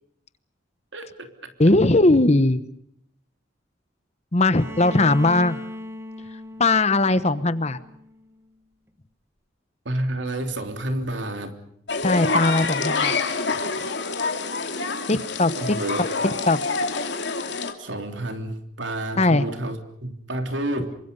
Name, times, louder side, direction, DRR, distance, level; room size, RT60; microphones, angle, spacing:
voice 1, 0.9-1.5 9.8-11.6 15.5-16.0 17.8-21.0, right 1 dB, 70° right, 6 dB, 3.3 m, -30 dB
voice 2, 1.6-2.7 4.3-5.6 6.6-7.8 12.0-13.2 15.1-15.5 16.0-16.6 19.2-19.4, left 2 dB, 35° left, 14 dB, 1.1 m, -19 dB
Bowed string instrument, 4.5-8.4, left 1 dB, 15° right, 1.3 m, -38 dB
sound 1, 11.9-17.7, left 4 dB, 60° left, 2.8 m, -26 dB
27.5 x 24.5 x 5.4 m, 0.73 s
head